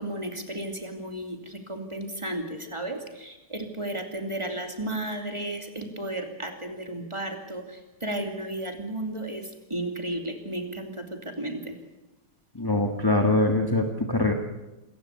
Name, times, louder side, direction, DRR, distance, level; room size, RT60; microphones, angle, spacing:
voice 1, 0.0-11.7, right 1 dB, 15° right, 4 dB, 2.5 m, -34 dB
voice 2, 12.5-14.3, left 2 dB, 15° left, 5 dB, 1.1 m, -23 dB
27.0 x 15.0 x 8.4 m, 1.0 s
omnidirectional pair, 2.4 m